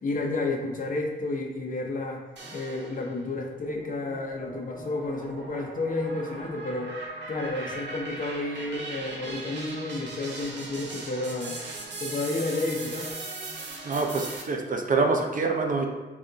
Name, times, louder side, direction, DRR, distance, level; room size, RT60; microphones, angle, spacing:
voice 1, 0.0-2.2 2.5-6.9 7.3-11.6 12.0-13.1, left 2 dB, 45° left, 1 dB, 0.8 m, -31 dB
sound 1, 2.4-3.2 3.7-14.4, right 2 dB, 75° right, 0.9 m, -39 dB
voice 2, 13.8-15.9, right 3 dB, 45° right, 3 dB, 0.6 m, -25 dB
7.1 x 2.6 x 2.8 m, 1.2 s
cardioid pair, 90°, 18 cm